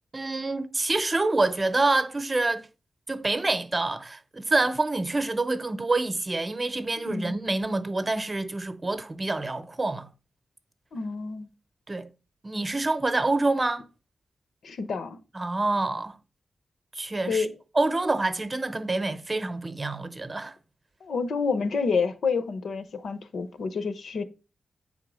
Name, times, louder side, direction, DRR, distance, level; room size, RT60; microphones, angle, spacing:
voice 1, 0.1-2.7 3.1-10.1 11.9-12.1 12.4-13.8 15.3-16.2 16.9-17.5 17.7-20.5, right 2 dB, 20° right, 0.8 m, -27 dB
voice 2, 7.0-7.4 10.9-11.5 14.6-15.2 17.3-17.5 21.0-24.2, left 5 dB, 75° left, 0.9 m, -28 dB
8.7 x 3.7 x 6.3 m
wide cardioid pair, 165°, 0 cm